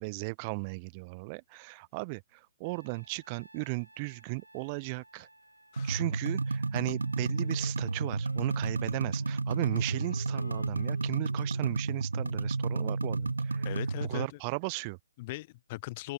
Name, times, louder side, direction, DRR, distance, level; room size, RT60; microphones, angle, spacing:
voice 1, 0.0-5.3 5.8-13.7 14.1-15.0, right 30 dB, 25° right, 1.3 m, -36 dB
Trumpet, 2.6-7.7, right 1 dB, 85° right, 7.4 m, -59 dB
sound 1, 5.8-14.3, right 3 dB, 70° right, 0.4 m, -32 dB
Wind instrument woodwind instrument, 7.3-14.0, left 2 dB, 80° left, 5.1 m, -51 dB
voice 2, 13.6-14.4 15.2-16.1, left 20 dB, 30° left, 2.4 m, -40 dB
open air
figure-of-eight pair, 135°, 0 cm